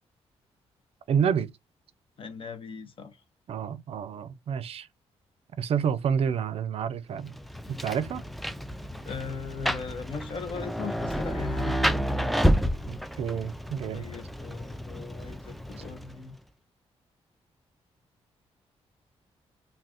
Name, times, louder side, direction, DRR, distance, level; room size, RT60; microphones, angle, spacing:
voice 1, 1.1-1.5 3.5-4.9 5.6-7.4 7.7-8.2 12.8-14.0, right 7 dB, 60° right, 0.5 m, -29 dB
voice 2, 2.2-3.2 9.0-11.8 13.9-16.4, left 6 dB, 50° left, 0.8 m, -38 dB
Rain, 7.2-16.3, equal, ahead, 0.3 m, -30 dB
2.4 x 2.3 x 3.4 m
cardioid pair, 85°, 11 cm